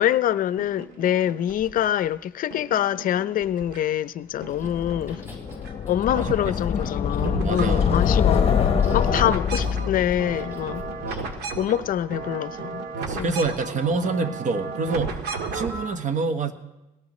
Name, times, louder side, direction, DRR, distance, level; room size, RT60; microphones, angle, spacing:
voice 1, 0.0-5.2 5.9-8.5 8.9-10.8 11.6-12.9 13.1-13.3, left 11 dB, 55° left, 0.6 m, -25 dB
sound 1, 0.6-2.1 2.5-4.1 4.4-5.7 6.0-15.9, right 4 dB, 80° right, 2.0 m, -35 dB
Chewing mastication, 4.5-11.4, left 1 dB, 15° right, 5.8 m, -43 dB
sound 2, 4.6-11.6, left 7 dB, 35° left, 0.9 m, -25 dB
voice 2, 6.1-6.9 7.4-8.0 13.0-15.2 15.5-16.5, right 3 dB, 50° right, 1.4 m, -27 dB
22.5 x 18.0 x 3.2 m
cardioid pair, 110°, 17 cm